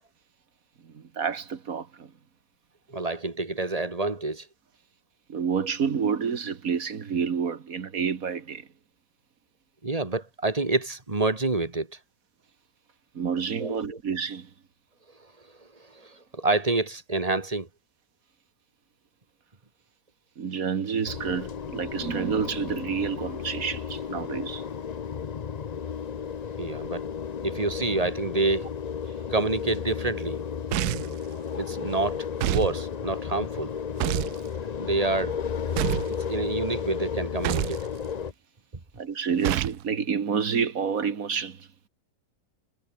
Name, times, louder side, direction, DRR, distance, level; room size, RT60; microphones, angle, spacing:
voice 1, 0.8-2.1 5.3-8.7 13.2-14.5 20.4-24.6 39.0-41.7, right 6 dB, 60° right, 1.8 m, -29 dB
voice 2, 2.9-4.5 9.8-11.9 13.6-14.0 15.9-17.7 26.6-27.1 27.4-28.7 29.3-30.4 31.5-33.7 34.8-35.4 36.1-37.8, right 2 dB, 20° right, 2.0 m, -28 dB
sound 1, 21.1-38.3, left 7 dB, 80° left, 0.3 m, -33 dB
sound 2, 30.7-31.2 32.4-32.7 34.0-34.4 35.8-36.1 37.4-37.8 39.4-39.8, right 15 dB, 75° right, 1.1 m, -27 dB
omnidirectional pair, 1.7 m